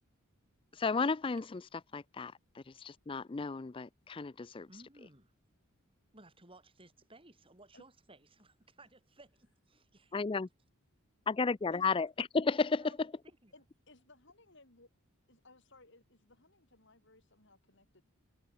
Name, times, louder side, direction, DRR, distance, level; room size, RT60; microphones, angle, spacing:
voice 1, 0.7-1.6 1.9-4.7 10.1-10.5 11.3-13.1, left 4 dB, 25° left, 0.4 m, -33 dB
voice 2, 4.7-5.3 6.1-10.4 12.0-12.1 12.8-13.0 13.2-13.5, right 2 dB, 25° right, 6.2 m, -59 dB
voice 3, 13.5-14.9 15.3-18.0, left 2 dB, 55° left, 5.5 m, -61 dB
head